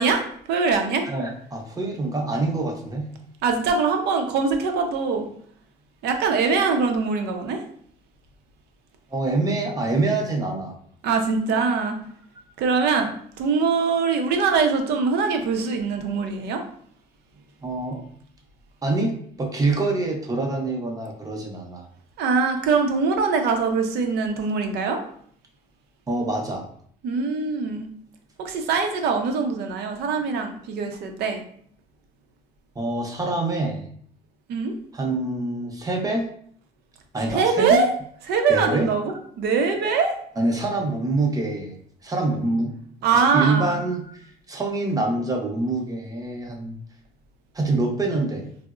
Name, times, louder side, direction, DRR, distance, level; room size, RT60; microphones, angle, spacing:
voice 1, 0.0-1.0 3.4-5.3 6.0-7.6 11.0-12.0 12.6-13.1 13.4-16.6 22.2-25.0 27.0-27.9 28.4-31.4 34.5-34.7 37.3-37.9 38.3-40.2 43.0-43.8, right 5 dB, 75° right, 4 dB, 0.6 m, -22 dB
voice 2, 1.1-3.1 9.1-10.7 17.6-18.0 18.8-21.9 26.1-26.7 30.2-30.3 32.8-33.8 34.9-36.3 37.1-37.8 38.5-38.9 40.4-41.7 42.0-42.7 43.1-46.8 47.5-48.5, right 2 dB, 20° right, 2 dB, 0.6 m, -25 dB
3.6 x 2.0 x 2.4 m, 0.62 s
cardioid pair, 110°, 17 cm